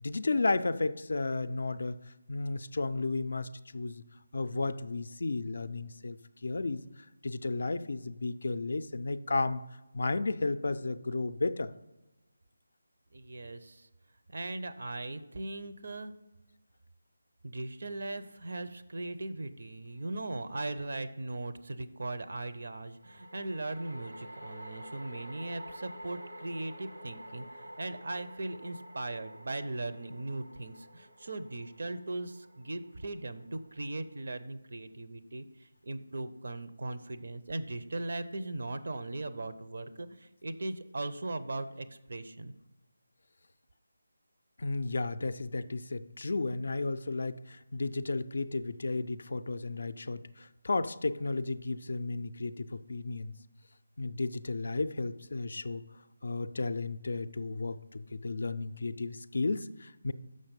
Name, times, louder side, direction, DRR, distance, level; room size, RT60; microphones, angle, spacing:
voice 1, 0.0-2.0 2.3-4.0 4.3-6.2 6.4-6.8 7.2-9.6 9.9-11.7 44.6-53.3 54.0-55.8 56.2-60.1, left 3 dB, 55° left, 13 dB, 0.4 m, -33 dB
voice 2, 13.1-13.9 14.3-16.1 17.4-42.5, right 2 dB, 55° right, 9 dB, 0.5 m, -39 dB
sound 1, 20.0-20.1 23.0-34.4, equal, 85° right, 1.2 m, -49 dB
6.5 x 5.7 x 5.2 m, 1.1 s
figure-of-eight pair, 155°, 0 cm